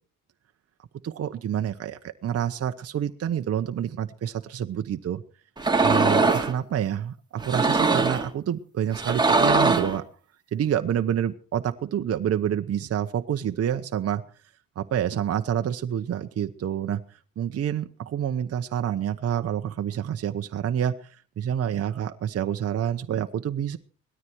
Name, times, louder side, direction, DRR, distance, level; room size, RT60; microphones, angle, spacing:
voice 1, 1.0-5.2 5.8-10.0 10.5-14.2 14.8-17.0 17.4-21.1 21.4-23.8, right 9 dB, 55° right, 7 dB, 0.9 m, -28 dB
sound 1, 5.6-6.5 7.4-8.3 8.9-10.0, right 3 dB, 15° right, 2.5 m, -21 dB
18.5 x 13.0 x 4.6 m, 0.42 s
cardioid pair, 90°, 30 cm